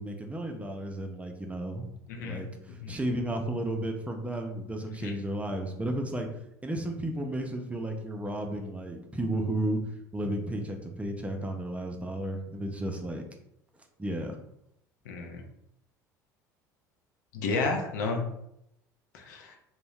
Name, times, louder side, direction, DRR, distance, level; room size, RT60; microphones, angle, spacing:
voice 1, 0.0-1.9 2.2-6.3 6.6-9.8 10.1-13.2 14.0-14.4, right 1 dB, 15° right, 3 dB, 0.5 m, -33 dB
voice 2, 2.1-2.4 2.8-3.0 5.0-5.1 15.1-15.4 17.3-18.2 19.1-19.5, left 3 dB, 70° left, 2 dB, 0.5 m, -31 dB
2.6 x 2.1 x 3.1 m, 0.78 s
hypercardioid pair, 70°, 10 cm